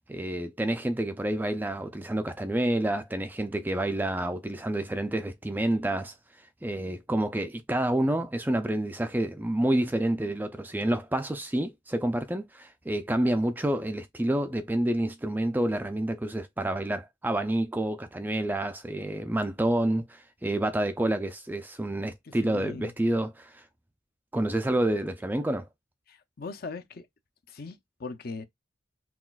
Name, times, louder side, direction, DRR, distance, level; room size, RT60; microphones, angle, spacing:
voice 1, 0.1-6.1 6.6-23.6 24.3-25.7, right 1 dB, 10° right, 0.3 m, -28 dB
voice 2, 22.4-22.9 26.1-27.1 27.5-28.5, left 3 dB, 45° left, 0.5 m, -39 dB
5.8 x 2.4 x 2.3 m
head